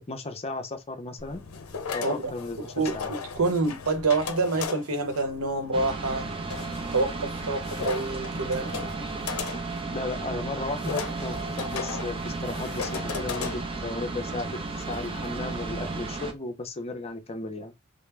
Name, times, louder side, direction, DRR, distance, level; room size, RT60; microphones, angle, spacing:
voice 1, 0.1-1.4 1.9-3.1 9.9-14.5 14.8-17.7, left 2 dB, 30° left, 0.6 m, -35 dB
sound 1, 1.2-16.2, left 6 dB, 75° left, 0.5 m, -38 dB
voice 2, 2.0-2.3 2.8-3.0 3.3-6.3 6.9-8.7, right 3 dB, 85° right, 0.8 m, -27 dB
sound 2, 5.7-16.3, right 3 dB, 25° right, 0.5 m, -34 dB
3.4 x 2.0 x 3.2 m
head